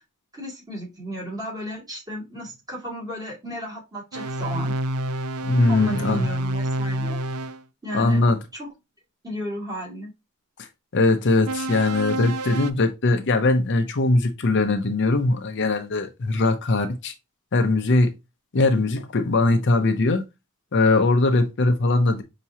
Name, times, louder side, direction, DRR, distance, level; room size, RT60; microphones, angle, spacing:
voice 1, 0.3-4.7 5.7-7.2 7.8-8.2 8.5-8.7 9.2-10.1, equal, 20° right, 2.5 m, -33 dB
sound 1, 4.1-7.6 11.4-12.7, right 1 dB, 90° right, 0.4 m, -28 dB
voice 2, 5.4-6.3 7.9-8.4 10.6-10.7 10.9-17.1 17.5-18.1 18.5-20.2 20.7-22.2, left 2 dB, 55° left, 0.6 m, -21 dB
5.7 x 3.0 x 2.7 m
head